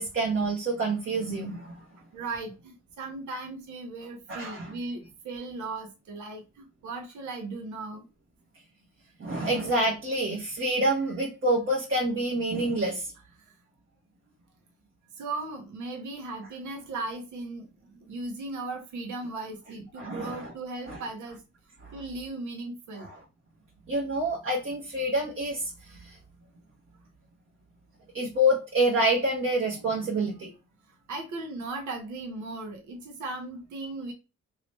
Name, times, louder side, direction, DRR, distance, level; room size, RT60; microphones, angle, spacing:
voice 1, 0.0-1.7 4.3-4.7 9.2-13.1 20.0-20.4 20.9-21.0 21.8-21.9 23.0-23.2 23.9-26.1 28.1-30.5, right 1 dB, 45° right, 1.1 m, -27 dB
voice 2, 2.1-8.0 13.4-13.6 15.2-21.4 21.9-23.1 29.7-30.1 31.1-34.1, right 3 dB, 70° right, 1.0 m, -37 dB
3.1 x 3.0 x 3.0 m
cardioid pair, 90°, 30 cm